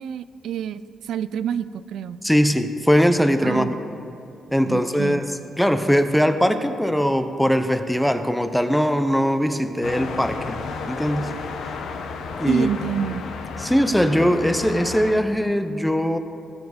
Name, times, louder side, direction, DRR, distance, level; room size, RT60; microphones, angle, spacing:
voice 1, 0.0-2.2 3.4-3.7 4.7-5.2 12.5-13.2, right 9 dB, 80° right, 15 dB, 0.3 m, -28 dB
voice 2, 2.2-3.8 4.5-10.6 10.9-11.3 11.6-11.7 12.4-12.7 13.6-16.2, equal, 5° left, 8 dB, 0.6 m, -21 dB
sound 1, 9.8-15.1, left 4 dB, 85° left, 0.9 m, -32 dB
19.0 x 6.9 x 4.1 m, 2.7 s
cardioid pair, 100°, 0 cm